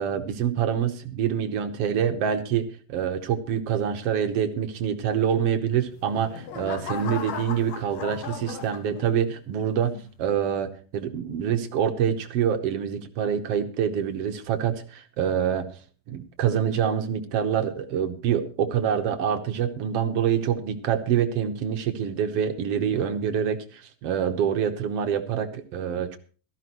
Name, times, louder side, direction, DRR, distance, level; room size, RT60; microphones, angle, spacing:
voice 1, 0.0-9.9 10.2-15.7 16.1-26.2, right 8 dB, 65° right, 7 dB, 1.6 m, -26 dB
sound 1, 5.8-9.4 9.9-10.3, left 7 dB, 90° left, 3.4 m, -37 dB
18.0 x 14.0 x 3.0 m, 0.38 s
omnidirectional pair, 3.9 m